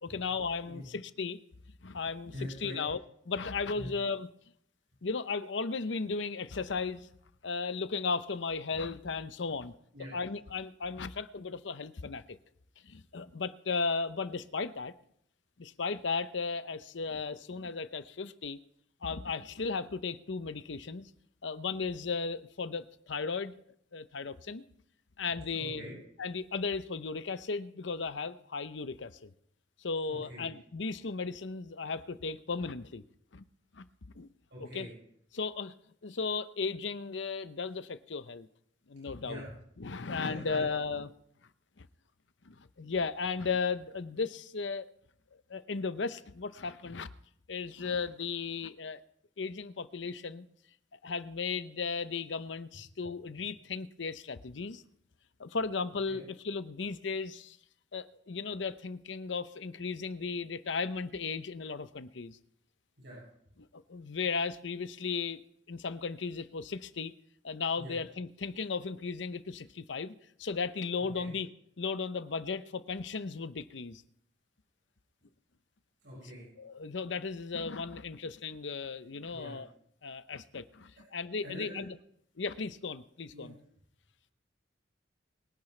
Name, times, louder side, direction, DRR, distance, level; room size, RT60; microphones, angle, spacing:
voice 1, 0.0-1.4 1.8-3.0 3.3-4.3 5.0-7.1 7.4-9.7 10.1-12.2 12.8-14.9 15.6-18.6 19.0-21.1 21.4-23.5 23.9-24.6 25.2-25.8 26.2-29.3 29.8-33.0 33.3-33.4 33.7-33.8 34.2-34.3 34.6-34.9 35.3-35.7 36.0-38.5 38.9-39.4 39.8-41.1 41.8-41.9 42.4-44.9 45.5-47.1 47.5-49.0 49.4-50.5 50.9-54.8 55.4-57.6 57.9-62.4 63.7-65.4 65.7-67.1 67.4-71.5 71.8-74.0 76.2-76.3 76.6-79.7 80.0-82.0 82.4-83.6, left 4 dB, 75° left, 13 dB, 0.7 m, -35 dB
voice 2, 2.3-2.8 3.7-3.9 9.9-10.1 25.6-25.9 30.1-30.5 34.5-34.9 39.2-39.5 40.2-40.6 56.1-56.2 63.0-63.2 67.8-67.9 71.1-71.3 76.0-76.4 79.3-79.6 81.4-81.8 83.3-83.5, equal, 75° right, -6 dB, 7.0 m, -44 dB
23.0 x 10.5 x 3.3 m, 0.70 s
head